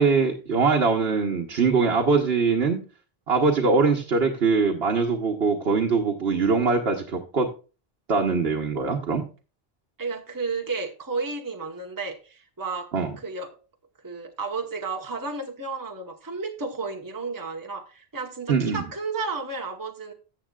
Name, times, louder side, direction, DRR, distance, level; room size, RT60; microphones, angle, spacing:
voice 1, 0.0-2.8 3.3-7.5 8.1-9.3 12.9-13.1 18.5-18.8, right 4 dB, 80° right, 0 dB, 1.3 m, -22 dB
voice 2, 10.0-13.5 14.0-20.1, right 4 dB, 20° right, 2 dB, 1.0 m, -32 dB
14.0 x 7.6 x 2.3 m, 0.34 s
omnidirectional pair, 1.0 m